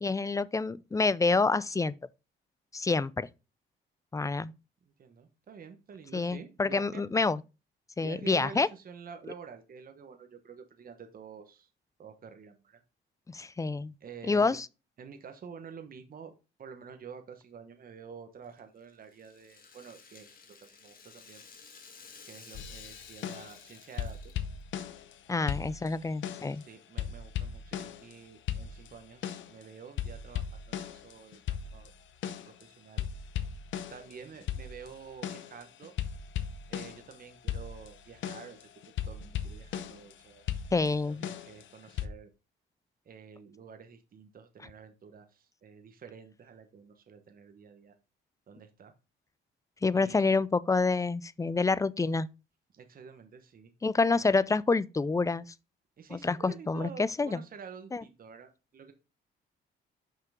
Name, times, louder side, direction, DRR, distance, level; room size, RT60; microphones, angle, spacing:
voice 1, 0.0-1.9 2.7-3.3 4.1-4.5 6.1-7.4 8.0-8.7 13.3-13.9 14.3-14.7 25.3-26.6 40.7-41.3 49.8-52.3 53.8-55.5 56.1-57.4 57.9-58.0, left 3 dB, 15° left, 0.4 m, -27 dB
voice 2, 4.9-7.0 8.0-11.7 12.0-12.8 14.0-14.6 15.0-16.3 16.6-21.4 22.2-24.2 26.5-31.4 31.7-31.9 32.2-33.1 33.9-35.9 36.7-38.7 39.0-40.5 40.7-42.3 43.0-47.9 48.5-48.9 49.9-50.4 52.7-53.7 54.1-54.2 56.0-58.9, right 6 dB, 45° right, 1.1 m, -49 dB
Rattle (instrument), 18.4-24.7, left 5 dB, 45° left, 1.6 m, -54 dB
sound 1, 22.5-23.7 24.0-25.2 25.5-26.6 27.0-28.2 28.5-29.6 30.0-32.6 33.0-37.2 37.5-40.1 40.5-42.1, left 9 dB, 70° left, 0.7 m, -37 dB
5.8 x 5.5 x 3.6 m
cardioid pair, 90°, 20 cm